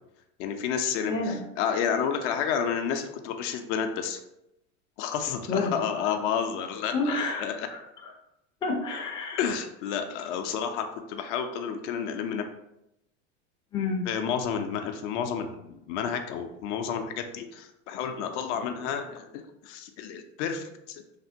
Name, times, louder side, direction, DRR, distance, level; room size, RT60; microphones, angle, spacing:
voice 1, 0.4-4.2 5.0-7.7 9.4-12.4 14.1-21.0, left 7 dB, 65° left, 6 dB, 0.5 m, -30 dB
voice 2, 1.1-1.4 5.5-5.7 6.9-7.4 7.7-8.1 8.6-9.4 13.7-14.0, left 3 dB, 15° left, -1 dB, 0.3 m, -29 dB
3.3 x 2.1 x 2.6 m, 0.84 s
supercardioid pair, 120°, 37 cm